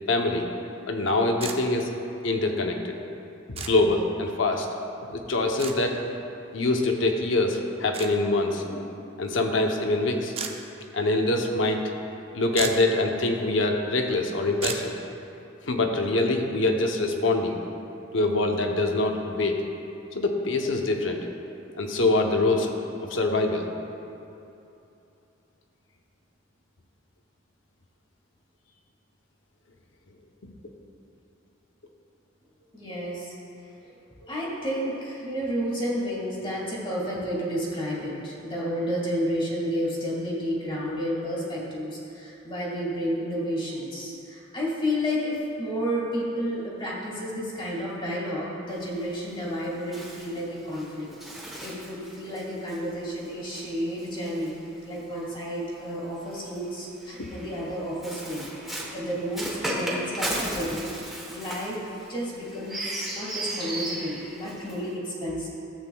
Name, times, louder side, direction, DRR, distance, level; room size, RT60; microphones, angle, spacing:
voice 1, 0.1-0.5 0.9-1.9 2.2-3.0 3.6-4.7 5.1-6.0 6.5-10.3 10.9-11.9 12.3-14.9 15.6-17.6 18.1-19.6 20.1-21.2 21.7-22.7 23.0-23.7 30.4-30.5 57.2-57.3, left 2 dB, 70° left, 3 dB, 0.8 m, -24 dB
sound 1, 1.4-1.6 3.6-3.7 5.6-5.8 7.9-8.1 10.4-10.5 12.2-12.3 12.5-12.9 14.6-14.9, right 6 dB, 30° right, 0.5 m, -32 dB
voice 2, 32.7-33.3 33.8-33.9 34.2-51.1 51.6-58.5 58.9-60.9 61.3-61.8 62.1-65.5, equal, 25° left, -5 dB, 1.8 m, -31 dB
Bird, 48.7-55.2 56.2-65.0, right 1 dB, ahead, 1.1 m, -36 dB
13.0 x 7.9 x 2.3 m, 2.8 s
head